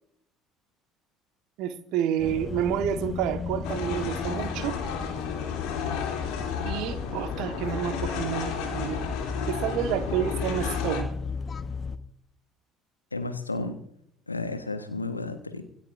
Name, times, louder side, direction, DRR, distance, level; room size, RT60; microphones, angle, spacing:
voice 1, 1.6-4.8 6.6-9.0 9.5-11.1, right 10 dB, 55° right, 9 dB, 1.4 m, -29 dB
sound 1, 2.2-12.0, left 5 dB, 30° left, 1.1 m, -35 dB
sound 2, 3.6-11.0, left 6 dB, 60° left, 3.0 m, -33 dB
voice 2, 13.1-13.8 14.3-15.6, left 3 dB, 85° left, 8 dB, 1.3 m, -32 dB
25.5 x 13.5 x 2.6 m, 0.72 s
figure-of-eight pair, 55°, 0 cm